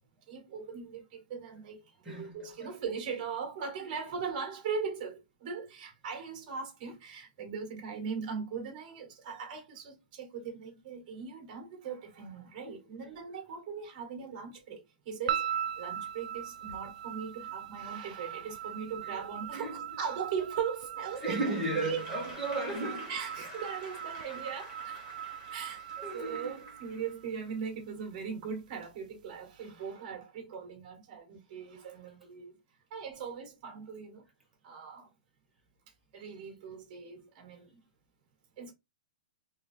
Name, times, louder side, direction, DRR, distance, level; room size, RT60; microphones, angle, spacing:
voice 1, 0.3-1.8 2.0-22.0 23.1-25.0 25.2-25.8 26.1-32.6 32.9-34.2 34.6-35.1 36.1-37.8 38.6-38.7, right 6 dB, 30° right, 1.7 m, -39 dB
sound 1, 15.3-27.6, right 10 dB, 55° right, 0.3 m, -40 dB
voice 2, 19.0-19.8 21.1-23.2 26.0-26.6, right 1 dB, 5° right, 1.3 m, -36 dB
Applause / Crowd, 21.1-27.5, left 2 dB, 35° left, 1.7 m, -50 dB
3.8 x 2.8 x 3.3 m
hypercardioid pair, 165°, 5 cm